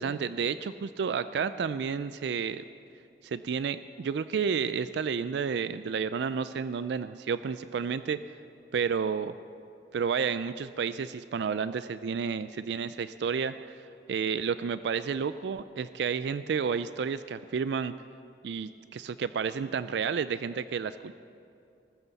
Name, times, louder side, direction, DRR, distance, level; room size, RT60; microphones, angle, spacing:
voice 1, 0.0-2.6 3.2-8.2 8.7-9.3 9.9-13.7 14.1-17.9 18.4-21.1, right 6 dB, 70° right, 13 dB, 0.3 m, -31 dB
20.0 x 14.0 x 4.1 m, 2.6 s
head